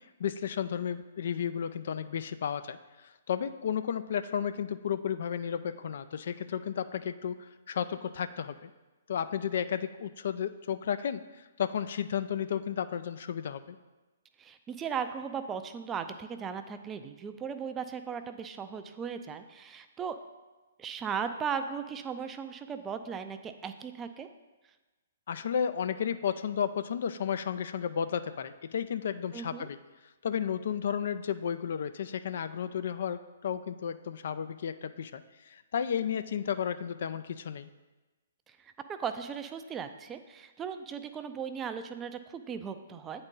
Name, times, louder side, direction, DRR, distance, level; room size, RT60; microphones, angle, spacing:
voice 1, 0.2-2.8 3.0-8.7 9.1-13.8 25.3-29.8 30.2-37.7, left 8 dB, 60° left, 12 dB, 0.3 m, -33 dB
voice 2, 14.4-20.2 20.8-24.3 29.3-29.7 38.5-43.3, right 6 dB, 20° right, 8 dB, 0.4 m, -37 dB
8.7 x 3.9 x 3.7 m, 1.2 s
figure-of-eight pair, 130°, 0 cm